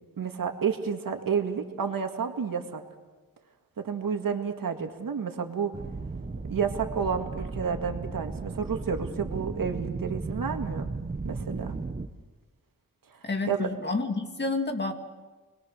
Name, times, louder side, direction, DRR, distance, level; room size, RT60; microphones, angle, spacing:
voice 1, 0.2-2.8 3.8-5.8 6.5-10.9 11.2-11.8 13.5-13.7, right 6 dB, 75° right, 5 dB, 2.1 m, -30 dB
sound 1, 5.7-12.1, right 3 dB, 25° right, 1.1 m, -35 dB
voice 2, 13.2-14.9, left 3 dB, 30° left, 5 dB, 2.2 m, -29 dB
28.5 x 21.5 x 6.6 m, 1.3 s
wide cardioid pair, 140°, 34 cm